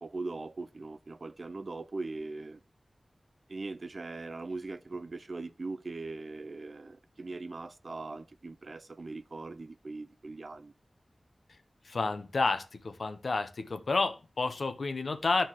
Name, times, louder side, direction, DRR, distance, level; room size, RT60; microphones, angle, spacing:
voice 1, 0.0-2.6 3.5-10.7, right 3 dB, 55° right, 0.4 m, -40 dB
voice 2, 11.8-15.5, left 3 dB, 80° left, 0.8 m, -30 dB
12.5 x 4.4 x 3.0 m
wide cardioid pair, 90°, 0 cm